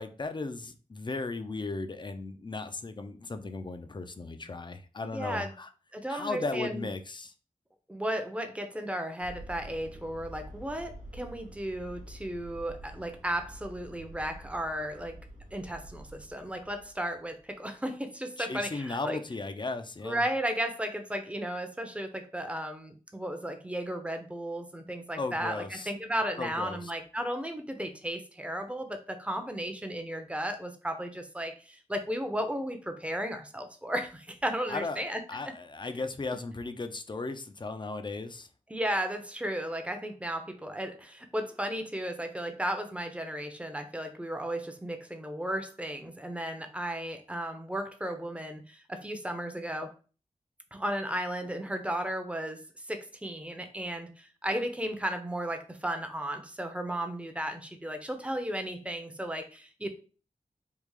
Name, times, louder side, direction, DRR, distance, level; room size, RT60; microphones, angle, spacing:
voice 1, 0.0-5.7 6.1-7.3 18.4-20.2 25.2-25.9 26.4-26.9 34.7-35.0 35.3-38.5, left 3 dB, 35° left, 9 dB, 0.5 m, -36 dB
voice 2, 5.0-5.5 5.9-6.9 7.9-15.2 15.5-19.2 20.0-35.4 38.7-49.9 50.7-52.6 52.9-59.9, right 1 dB, 10° right, 6 dB, 0.7 m, -34 dB
sound 1, 9.2-17.5, right 1 dB, 85° right, 0.7 m, -48 dB
3.6 x 2.4 x 3.1 m, 0.37 s
cardioid pair, 50°, 13 cm